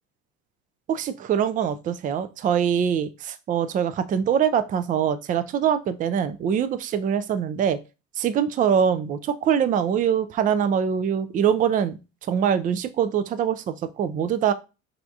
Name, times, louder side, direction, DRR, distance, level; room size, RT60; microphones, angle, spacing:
voice 1, 0.9-7.8 8.2-12.0 12.3-14.5, right 8 dB, 20° right, 12 dB, 0.4 m, -23 dB
4.9 x 2.4 x 2.3 m, 0.28 s
hypercardioid pair, 70°, 39 cm